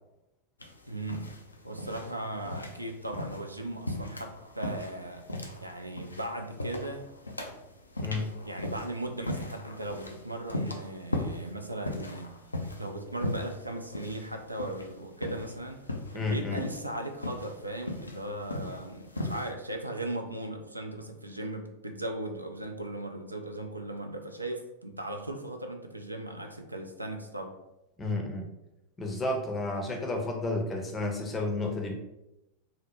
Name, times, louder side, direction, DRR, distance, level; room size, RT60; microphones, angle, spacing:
sound 1, 0.6-19.5, left 1 dB, 80° left, 0.3 m, -38 dB
voice 1, 0.9-1.3 1.6-5.3 5.6-7.1 8.4-12.4 12.8-15.8 16.1-27.5, right 1 dB, 85° right, 4 dB, 0.3 m, -37 dB
voice 2, 16.1-16.6 28.0-28.5 29.0-31.9, left 2 dB, 20° left, 2 dB, 0.5 m, -31 dB
2.7 x 2.0 x 3.0 m, 0.93 s
figure-of-eight pair, 90°, 0 cm